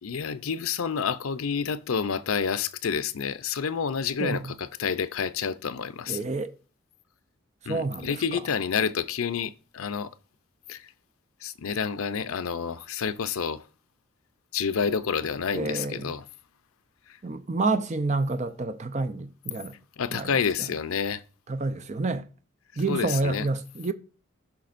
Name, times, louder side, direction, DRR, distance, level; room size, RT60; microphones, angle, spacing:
voice 1, 0.0-6.3 7.7-10.1 10.7-10.9 11.4-13.6 14.5-16.3 17.1-17.2 20.0-21.2 22.7-23.5, left 6 dB, 80° left, 0.5 m, -29 dB
voice 2, 4.2-4.5 6.1-6.5 7.6-8.1 15.5-16.1 17.2-19.8 20.1-20.3 21.5-22.2 22.8-23.9, right 3 dB, 35° right, 0.5 m, -28 dB
16.0 x 5.8 x 2.5 m
head